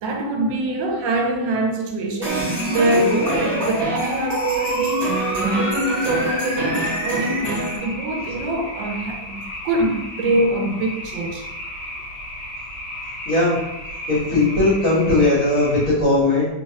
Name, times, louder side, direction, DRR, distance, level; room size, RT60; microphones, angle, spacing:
voice 1, 0.0-11.5, right 1 dB, 75° right, 2 dB, 1.2 m, -24 dB
sound 1, 2.2-7.8, right 3 dB, 30° right, 1.2 m, -26 dB
sound 2, 2.3-15.9, left 1 dB, 80° left, 1.5 m, -34 dB
sound 3, 2.4-7.4, right 1 dB, 45° right, 0.8 m, -28 dB
voice 2, 13.3-13.6 14.1-16.5, left 2 dB, 50° left, -8 dB, 1.4 m, -18 dB
3.4 x 3.0 x 2.7 m, 0.96 s
omnidirectional pair, 2.1 m